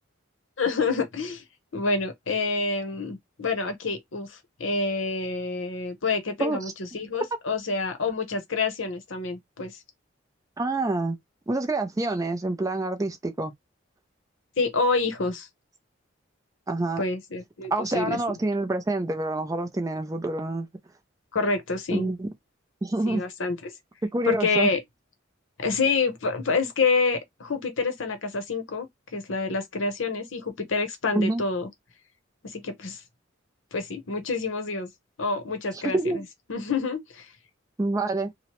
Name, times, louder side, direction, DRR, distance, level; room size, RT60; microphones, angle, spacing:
voice 1, 0.6-1.4 1.7-9.7 14.6-15.5 17.0-18.4 21.3-22.1 23.1-23.7 24.3-24.8 25.6-28.9 29.1-31.7 32.4-33.0 33.7-34.9 35.2-36.2 36.5-37.3, left 4 dB, 75° left, 0.8 m, -27 dB
voice 2, 10.6-11.2 11.5-13.5 16.7-17.0 17.7-20.7 21.9-22.3 22.8-23.2 24.1-24.7 31.1-31.4 35.7-36.2 37.8-38.3, right 2 dB, 15° right, 0.3 m, -27 dB
2.8 x 2.0 x 2.9 m
head